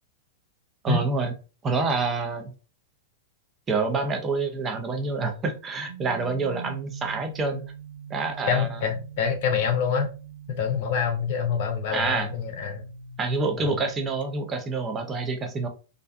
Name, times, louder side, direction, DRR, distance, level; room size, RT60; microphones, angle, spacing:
voice 1, 0.8-1.3 1.6-2.5 3.7-7.6 8.1-8.8 11.9-12.3 13.2-15.7, right 3 dB, 25° right, 0.6 m, -27 dB
sound 1, 5.9-14.1, right 5 dB, 85° right, 1.3 m, -43 dB
voice 2, 8.5-10.1 10.5-12.8 13.6-13.7, left 6 dB, 55° left, 0.6 m, -26 dB
2.5 x 2.1 x 2.4 m
hypercardioid pair, 105°, 0 cm